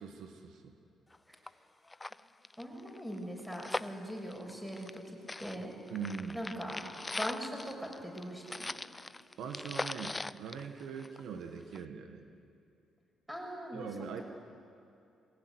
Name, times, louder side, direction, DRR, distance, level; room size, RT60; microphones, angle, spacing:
voice 1, 0.0-0.7 5.9-6.4 8.9-9.0 9.4-12.2 13.7-14.2, right 6 dB, 80° right, 5 dB, 1.8 m, -42 dB
sound 1, 1.1-1.2 1.5-1.6 1.9-5.0 5.3-11.4 11.7-11.8, left 2 dB, 15° left, 0.5 m, -41 dB
voice 2, 2.6-5.7 6.3-6.8 7.1-8.7 13.3-13.9 14.2-14.3, equal, 5° right, -1 dB, 7.2 m, -41 dB
23.0 x 18.5 x 9.8 m, 2.7 s
cardioid pair, 90°, 0 cm